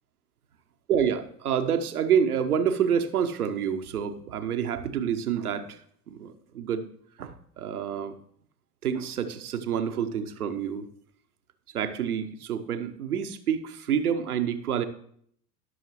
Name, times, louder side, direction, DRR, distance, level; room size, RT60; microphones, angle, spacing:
voice 1, 0.9-5.8 6.1-6.8 7.2-8.1 8.8-10.9 11.7-14.9, right 8 dB, 70° right, 7 dB, 1.0 m, -28 dB
17.5 x 6.4 x 3.1 m, 0.63 s
figure-of-eight pair, 75°, 46 cm